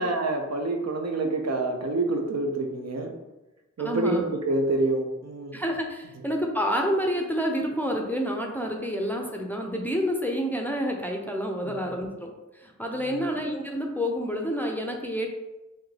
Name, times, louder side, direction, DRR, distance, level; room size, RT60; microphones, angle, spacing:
voice 1, 0.0-3.1 3.8-5.6 11.6-11.7 12.9-13.2, right 2 dB, 65° right, 3 dB, 0.6 m, -27 dB
voice 2, 3.8-4.3 5.5-15.3, equal, 5° left, 1 dB, 0.5 m, -29 dB
3.6 x 2.7 x 3.2 m, 1.0 s
wide cardioid pair, 45°, 29 cm